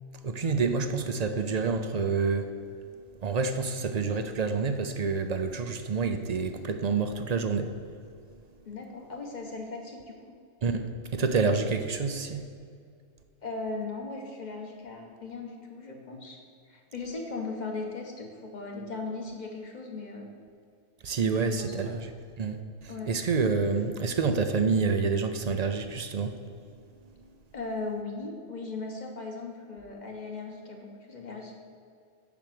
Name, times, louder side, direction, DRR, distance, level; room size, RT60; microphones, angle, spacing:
voice 1, 0.2-2.6 3.2-7.7 10.6-12.4 21.0-22.1 22.4-26.4 27.1-27.2, right 4 dB, 45° right, 7 dB, 0.5 m, -28 dB
voice 2, 8.6-10.4 13.4-16.4 16.7-20.3 21.2-21.7 22.9-23.1 27.5-31.6, left 3 dB, 35° left, 1 dB, 1.4 m, -38 dB
7.2 x 6.1 x 7.7 m, 2.3 s
omnidirectional pair, 1.3 m